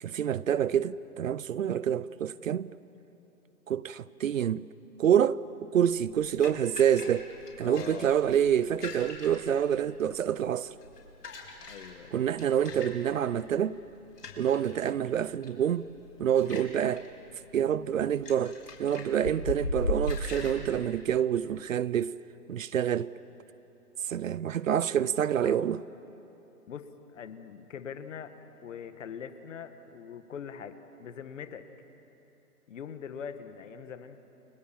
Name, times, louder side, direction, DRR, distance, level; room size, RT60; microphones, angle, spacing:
voice 1, 0.0-2.7 3.7-4.7 5.0-7.3 7.6-10.7 12.1-13.8 14.4-15.9 16.2-17.1 17.5-22.2 22.5-23.1 24.0-25.8, right 9 dB, 55° right, 0.7 m, -27 dB
sound 1, 5.8-20.5, left 2 dB, 85° left, 5.0 m, -40 dB
voice 2, 7.6-8.1 11.7-12.2 25.4-25.8 26.7-28.3 28.6-31.7 32.7-34.2, left 7 dB, 50° left, 1.8 m, -42 dB
30.0 x 23.5 x 7.6 m
hypercardioid pair, 150°, 47 cm